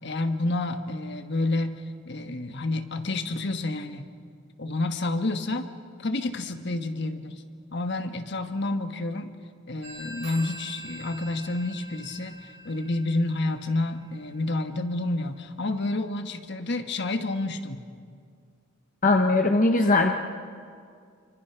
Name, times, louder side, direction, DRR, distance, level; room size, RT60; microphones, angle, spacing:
voice 1, 0.0-4.1 4.6-5.7 6.0-7.4 7.7-9.3 9.7-17.8, left 2 dB, 55° left, 7 dB, 1.4 m, -29 dB
Telephone, 9.8-15.2, equal, 60° right, 5.9 m, -45 dB
voice 2, 19.0-20.1, left 2 dB, 40° left, 4 dB, 1.0 m, -20 dB
27.0 x 24.5 x 5.9 m, 2.2 s
head